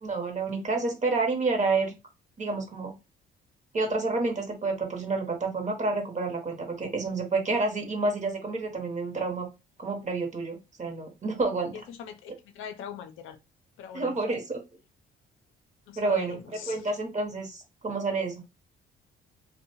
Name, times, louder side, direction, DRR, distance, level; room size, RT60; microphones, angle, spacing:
voice 1, 0.0-1.9 2.4-2.9 3.7-9.5 9.8-11.7 13.9-14.6 16.0-16.4 16.7-18.4, right 3 dB, 35° right, 0.8 m, -29 dB
voice 2, 11.7-13.4 13.8-14.3 15.9-16.9, left 8 dB, 85° left, 0.5 m, -42 dB
2.6 x 2.1 x 2.8 m
cardioid pair, 90°, 20 cm